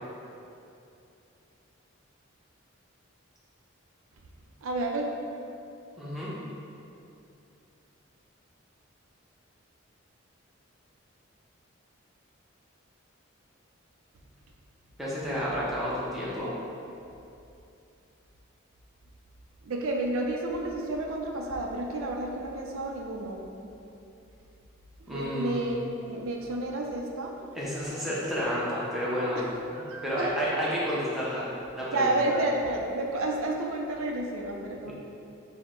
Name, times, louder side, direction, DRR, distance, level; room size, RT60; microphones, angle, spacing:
voice 1, 4.6-5.1 19.6-23.4 25.0-27.3 29.4-29.5 29.7-30.5 31.9-34.9, right 2 dB, 85° right, 1 dB, 0.5 m, -31 dB
voice 2, 6.0-6.3 15.0-16.5 25.1-25.6 27.5-29.4 30.0-32.2 34.8-34.9, equal, ahead, -8 dB, 0.6 m, -30 dB
4.8 x 2.1 x 4.4 m, 2.7 s
head